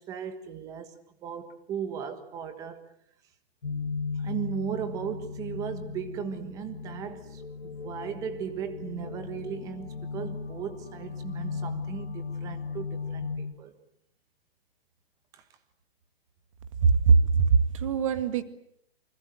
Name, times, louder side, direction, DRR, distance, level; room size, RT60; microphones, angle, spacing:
voice 1, 0.0-2.8 4.1-13.7 15.3-15.4, right 8 dB, 10° right, 1.4 m, -37 dB
sound 1, 3.6-13.4, left 5 dB, 85° left, 3.2 m, -37 dB
voice 2, 16.8-18.4, right 5 dB, 30° right, 1.9 m, -21 dB
27.5 x 25.5 x 7.8 m
hypercardioid pair, 165°, 31 cm